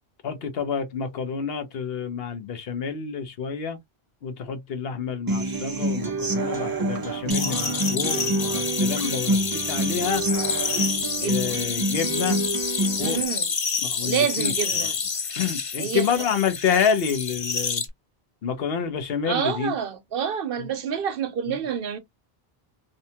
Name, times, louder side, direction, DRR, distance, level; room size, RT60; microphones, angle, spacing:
voice 1, 0.2-3.8 4.2-10.2 11.2-12.4 13.0-13.2 13.8-14.9 15.4-17.8 18.4-19.7 20.6-20.7 21.5-21.6, left 6 dB, 70° left, 0.9 m, -28 dB
Human voice / Acoustic guitar, 5.3-13.3, right 1 dB, 35° right, 0.3 m, -27 dB
sound 1, 7.3-17.9, left 5 dB, 45° left, 0.5 m, -28 dB
voice 2, 11.2-11.6 13.0-13.5 14.0-15.0 15.8-16.1 19.2-22.0, right 8 dB, 70° right, 0.8 m, -28 dB
2.7 x 2.2 x 2.7 m
omnidirectional pair, 1.0 m